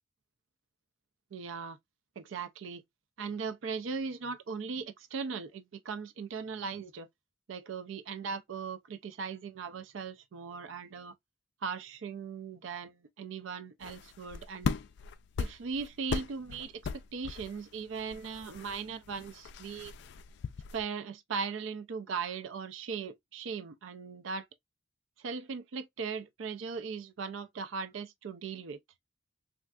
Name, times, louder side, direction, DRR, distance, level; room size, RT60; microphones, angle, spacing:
voice 1, 1.3-1.8 2.2-2.8 3.2-7.1 7.5-11.1 11.6-14.7 15.4-19.9 20.7-24.5 25.2-28.8, right 5 dB, 75° right, 0.4 m, -38 dB
sound 1, 13.8-20.8, left 5 dB, 60° left, 0.3 m, -39 dB
3.4 x 2.5 x 2.3 m
head